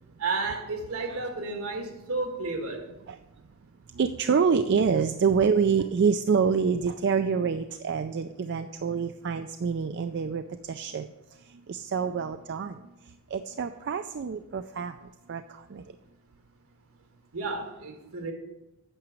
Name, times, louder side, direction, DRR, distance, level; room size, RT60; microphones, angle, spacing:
voice 1, 0.2-2.9 17.3-18.3, right 3 dB, 75° right, 4 dB, 1.7 m, -32 dB
voice 2, 3.9-11.1 11.5-12.8 13.3-15.0 15.3-15.8, right 6 dB, 50° right, 9 dB, 0.4 m, -27 dB
8.9 x 6.0 x 7.5 m, 0.98 s
head